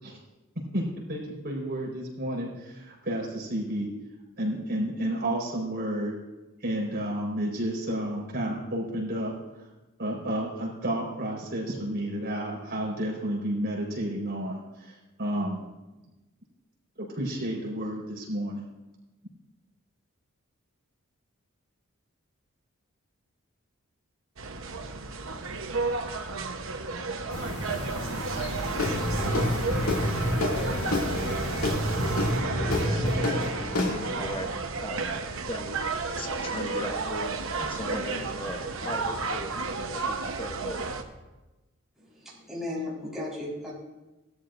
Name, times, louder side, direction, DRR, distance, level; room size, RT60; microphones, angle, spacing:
voice 1, 0.7-3.9 4.4-6.1 6.6-9.7 10.0-15.7 17.0-18.7, right 1 dB, 45° right, -3 dB, 4.6 m, -31 dB
sound 1, 24.4-41.0, right 3 dB, 65° right, 1.0 m, -32 dB
sound 2, 27.3-32.3, left 1 dB, 50° left, 1.3 m, -36 dB
Guitar / Drum, 28.7-34.3, left 2 dB, 80° left, 2.3 m, -28 dB
voice 2, 32.6-33.5 34.1-34.5 34.8-35.2 35.5-37.3 37.6-39.5 39.9-40.8, left 1 dB, 25° left, 5 dB, 1.0 m, -38 dB
voice 3, 42.0-43.7, left 2 dB, ahead, -7 dB, 4.0 m, -35 dB
18.5 x 13.0 x 2.6 m, 1.1 s
head